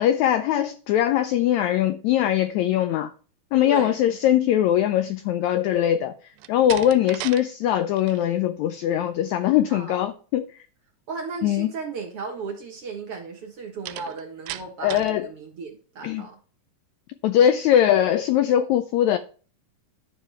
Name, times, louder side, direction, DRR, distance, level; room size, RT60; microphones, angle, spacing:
voice 1, 0.0-3.1 3.5-6.1 6.5-10.5 11.4-11.7 14.8-15.3 16.0-16.2 17.2-19.2, left 11 dB, 85° left, 1.6 m, -21 dB
voice 2, 3.6-4.0 9.7-10.0 11.1-16.4, right 4 dB, 55° right, 1.8 m, -35 dB
Slam, 6.3-7.4 7.8-8.2 13.9-15.2, right 14 dB, 85° right, 2.3 m, -36 dB
11.5 x 6.9 x 3.4 m
omnidirectional pair, 3.9 m